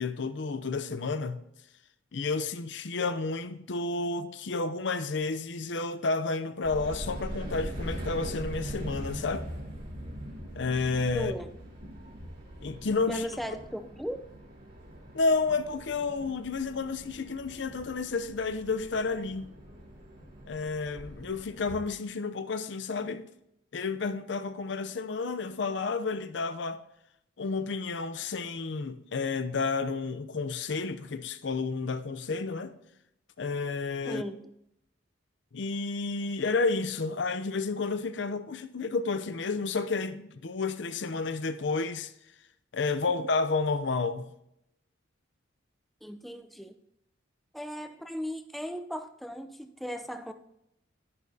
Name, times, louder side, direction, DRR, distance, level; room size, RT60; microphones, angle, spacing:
voice 1, 0.0-1.4 2.1-9.4 10.6-11.3 12.6-13.3 15.1-19.5 20.5-23.2 23.7-26.8 27.4-32.7 33.4-34.2 35.5-42.1 42.7-44.3, left 4 dB, 65° left, 0.6 m, -31 dB
sound 1, 6.6-21.8, equal, 55° right, 4.0 m, -42 dB
voice 2, 11.1-11.5 13.1-14.3 34.1-34.3 46.0-46.8 47.5-50.3, equal, ahead, 0.5 m, -37 dB
11.0 x 10.5 x 2.8 m
head